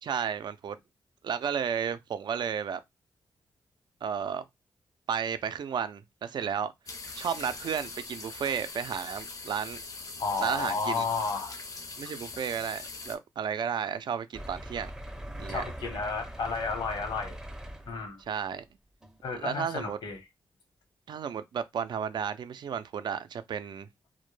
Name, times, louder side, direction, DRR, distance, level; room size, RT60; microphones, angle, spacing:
voice 1, 0.0-0.8 1.2-2.8 4.0-4.4 5.1-6.7 7.1-9.8 10.4-11.1 12.0-14.9 15.4-15.6 18.3-18.6 19.3-20.0 21.1-23.9, right 7 dB, 65° right, 0.4 m, -33 dB
sound 1, 6.9-13.2, left 3 dB, 45° left, 0.5 m, -42 dB
voice 2, 10.2-11.6 15.5-17.4 17.9-18.2 19.2-20.2, left 4 dB, 75° left, 0.9 m, -32 dB
sound 2, 14.3-18.3 19.0-19.2 19.6-19.7, right 1 dB, 10° right, 0.5 m, -41 dB
2.1 x 2.1 x 3.1 m
cardioid pair, 75°, 8 cm